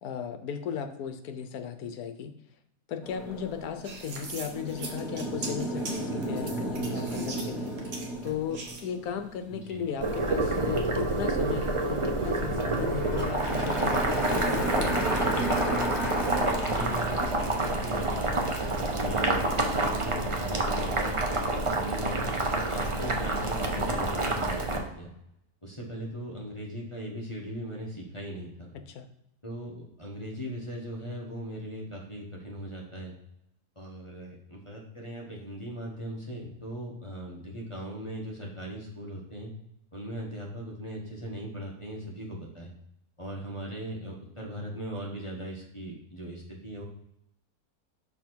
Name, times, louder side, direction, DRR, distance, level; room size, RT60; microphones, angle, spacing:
voice 1, 0.0-2.3 2.9-7.7 8.2-15.0 28.9-29.1, left 7 dB, 75° left, 8 dB, 1.2 m, -36 dB
sound 1, 3.0-12.0 12.4-20.2, right 1 dB, ahead, 1.3 m, -35 dB
sound 2, 3.8-8.9, right 3 dB, 80° right, 1.7 m, -41 dB
voice 2, 9.5-9.8 16.4-21.2 21.7-25.1 25.6-28.7 29.4-33.2 33.7-39.5 39.9-42.7 43.2-46.8, right 1 dB, 20° left, -3 dB, 1.1 m, -39 dB
Boiling, 10.0-24.8, right 2 dB, 35° right, 0.5 m, -28 dB
5.8 x 4.2 x 4.5 m, 0.80 s
omnidirectional pair, 1.7 m